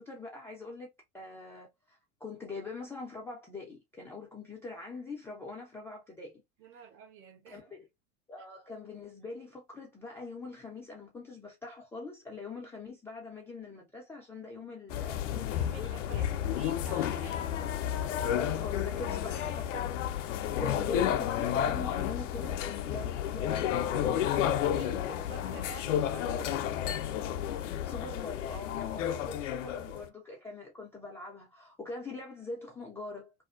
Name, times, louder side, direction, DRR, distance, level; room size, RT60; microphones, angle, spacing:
voice 1, 0.0-6.4 6.7-6.8 7.5-7.9 8.3-16.6 18.1-19.9 20.2-24.3 27.6-33.3, left 3 dB, 5° left, 0.3 m, -43 dB
voice 2, 6.6-7.6 15.6-17.7 24.7-26.6 29.1-29.3 29.9-30.0, right 7 dB, 35° right, 0.7 m, -49 dB
sound 1, 14.9-30.1, left 10 dB, 65° left, 0.5 m, -31 dB
2.5 x 2.3 x 2.4 m
hypercardioid pair, 85°, 41 cm